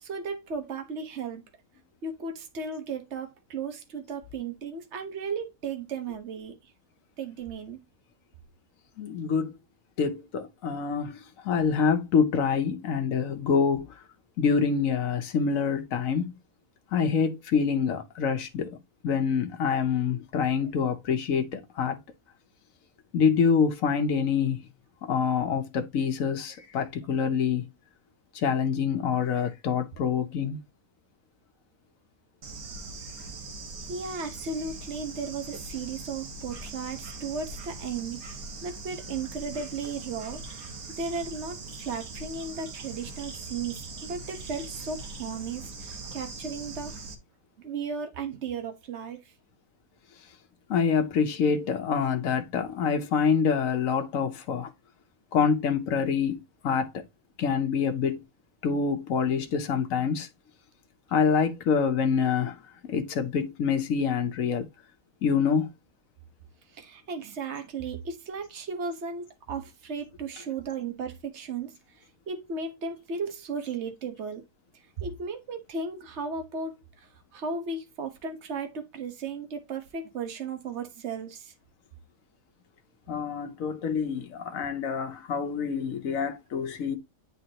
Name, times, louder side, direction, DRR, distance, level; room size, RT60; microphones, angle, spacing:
voice 1, 0.0-1.4 2.0-6.6 7.2-7.8 29.9-30.0 33.9-38.2 38.6-40.4 41.0-46.9 47.6-49.2 66.7-71.8 72.3-74.4 75.0-76.7 77.3-81.5, right 4 dB, 55° right, 1.4 m, -35 dB
voice 2, 9.0-9.5 10.0-13.9 14.4-16.3 16.9-18.7 19.0-22.0 23.1-24.7 25.1-27.6 28.3-30.6 50.7-54.7 55.3-57.0 57.4-58.2 58.6-60.3 61.1-62.5 62.9-64.7 65.2-65.7 83.1-87.0, left 6 dB, 70° left, 1.3 m, -26 dB
Bird / Insect, 32.4-47.1, right 3 dB, 80° right, 1.7 m, -41 dB
9.0 x 3.9 x 2.9 m
omnidirectional pair, 1.5 m